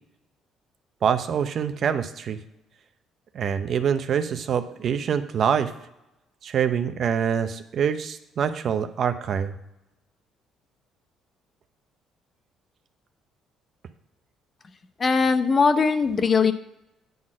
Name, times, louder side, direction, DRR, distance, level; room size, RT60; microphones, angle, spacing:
voice 1, 1.0-2.4 3.3-5.7 6.4-9.5, right 7 dB, 55° right, 10 dB, 0.7 m, -25 dB
voice 2, 15.0-16.5, left 5 dB, 35° left, 11 dB, 0.6 m, -20 dB
9.4 x 4.1 x 7.3 m, 0.90 s
cardioid pair, 95°, 0 cm